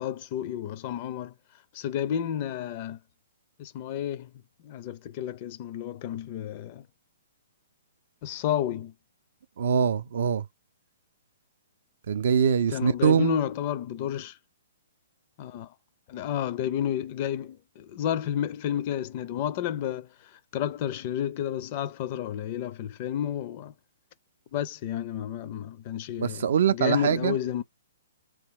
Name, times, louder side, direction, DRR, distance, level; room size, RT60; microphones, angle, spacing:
voice 1, 0.0-1.3 1.7-3.0 3.6-4.3 4.6-6.8 8.2-8.9 12.7-14.4 15.4-15.7 16.1-20.1 20.5-23.7 24.5-27.6, left 10 dB, 40° left, 0.4 m, -31 dB
voice 2, 9.6-10.4 12.1-13.4 26.2-27.3, right 7 dB, 60° right, 0.4 m, -23 dB
2.9 x 2.3 x 3.6 m
hypercardioid pair, 125°, 0 cm